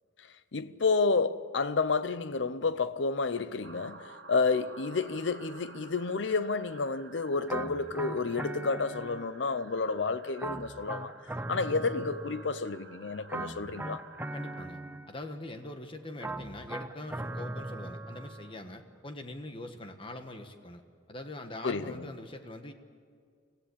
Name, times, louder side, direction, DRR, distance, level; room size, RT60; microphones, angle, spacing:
voice 1, 0.5-11.1 11.5-14.0 21.6-22.1, left 4 dB, 75° left, 0.7 m, -30 dB
sound 1, 3.6-14.7, right 4 dB, 70° right, 2.0 m, -51 dB
sound 2, 7.5-9.6 10.4-12.8 13.3-15.4 16.2-18.6, right 2 dB, 10° right, 0.5 m, -40 dB
voice 2, 14.3-14.8 15.1-20.8 21.1-22.7, left 1 dB, 30° left, 1.4 m, -43 dB
25.0 x 16.0 x 8.5 m
head